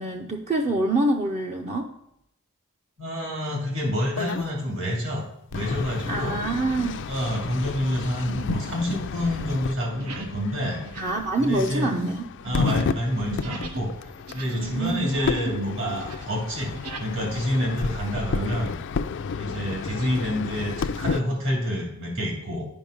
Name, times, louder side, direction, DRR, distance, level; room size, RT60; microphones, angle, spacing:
voice 1, 0.0-1.9 6.1-7.1 11.0-12.2 14.5-15.1, right 2 dB, 30° right, 2 dB, 0.5 m, -26 dB
voice 2, 3.0-5.2 5.5-6.4 7.1-10.8 11.4-11.9 12.4-16.7 17.0-18.7 19.4-22.6, equal, 60° right, -2 dB, 2.7 m, -28 dB
sound 1, 4.1-4.5 5.5-21.2, left 5 dB, 55° left, 0.4 m, -32 dB
sound 2, 5.0-5.2 5.7-6.0 6.6-7.0 7.3-13.9 14.2-15.6 15.9-17.1, right 3 dB, 90° right, 1.0 m, -39 dB
9.4 x 5.4 x 5.1 m, 0.77 s
head